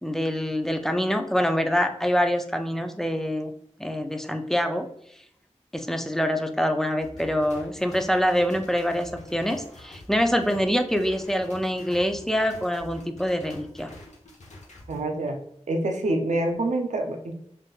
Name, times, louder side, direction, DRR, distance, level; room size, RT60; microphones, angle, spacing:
voice 1, 0.0-3.5 3.8-4.9 5.7-13.9, equal, 5° left, 6 dB, 0.4 m, -25 dB
sound 1, 7.0-15.0, left 1 dB, 80° left, 0.7 m, -46 dB
voice 2, 14.9-15.4 15.7-17.3, right 2 dB, 85° right, 4 dB, 0.5 m, -26 dB
3.7 x 2.6 x 2.3 m, 0.72 s
wide cardioid pair, 60°, 12 cm